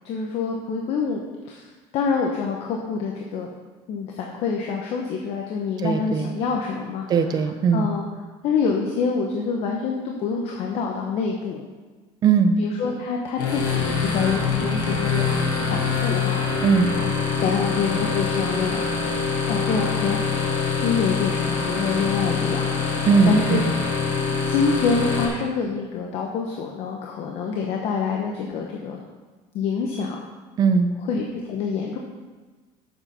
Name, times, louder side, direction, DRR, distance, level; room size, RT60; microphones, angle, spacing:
voice 1, 0.0-1.7 1.9-3.5 3.9-7.3 7.7-8.0 8.4-11.7 12.6-15.3 15.6-16.4 17.3-18.8 19.5-20.5 20.8-22.7 23.2-23.9 24.5-29.0 29.5-30.2 31.1-32.0, left 5 dB, 55° left, 1 dB, 1.1 m, -26 dB
voice 2, 5.8-6.3 7.1-7.9 12.2-12.6 16.6-16.9 23.1-23.7 30.6-30.9, right 5 dB, 35° right, 8 dB, 0.7 m, -19 dB
sound 1, 13.4-25.3, left 5 dB, 85° left, 2.0 m, -24 dB
8.0 x 6.7 x 5.6 m, 1.3 s
cardioid pair, 155°, 12 cm